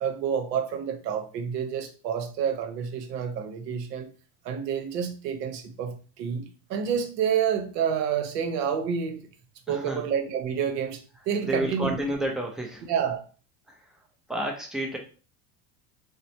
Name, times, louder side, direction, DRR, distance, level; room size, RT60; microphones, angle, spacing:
voice 1, 0.0-4.1 4.4-9.2 9.7-12.0 12.9-13.2, right 7 dB, 85° right, 0.8 m, -29 dB
voice 2, 9.7-10.1 11.1-12.8 13.7-13.8 14.3-15.0, right 1 dB, ahead, 0.3 m, -31 dB
3.0 x 2.0 x 2.7 m
supercardioid pair, 100°, 48 cm